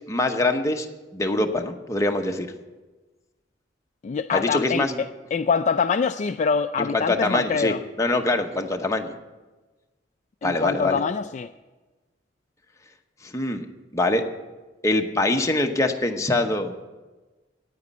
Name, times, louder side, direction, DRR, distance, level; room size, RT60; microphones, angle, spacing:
voice 1, 0.1-0.9 1.1-2.5 4.3-5.0 6.8-9.1 10.4-11.0 13.2-13.7 13.9-14.2 14.8-16.7, left 2 dB, 15° left, 4 dB, 0.9 m, -24 dB
voice 2, 4.0-7.8 10.4-11.5, left 5 dB, 40° left, 9 dB, 0.3 m, -25 dB
9.4 x 9.3 x 9.7 m, 1.2 s
head